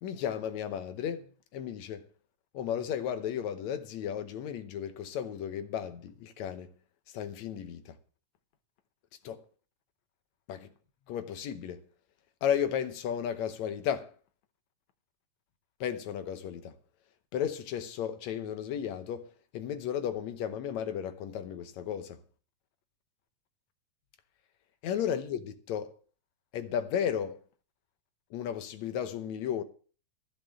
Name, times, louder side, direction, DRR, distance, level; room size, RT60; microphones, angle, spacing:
voice 1, 0.0-2.0 2.5-6.7 7.1-8.0 9.2-9.4 10.5-10.7 11.1-11.8 12.4-14.1 15.8-16.7 17.3-19.3 19.5-22.2 24.8-25.9 26.5-27.4 28.3-29.6, left 9 dB, 80° left, 2.2 m, -34 dB
14.5 x 5.1 x 7.6 m
omnidirectional pair, 3.3 m